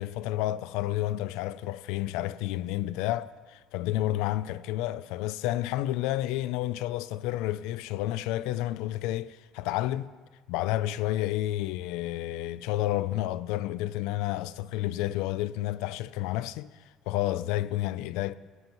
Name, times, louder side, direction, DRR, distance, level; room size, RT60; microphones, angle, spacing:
voice 1, 0.0-10.1 10.5-16.7 17.1-18.4, left 14 dB, 90° left, 0.4 m, -30 dB
17.5 x 13.0 x 3.1 m
cardioid pair, 160°, 0 cm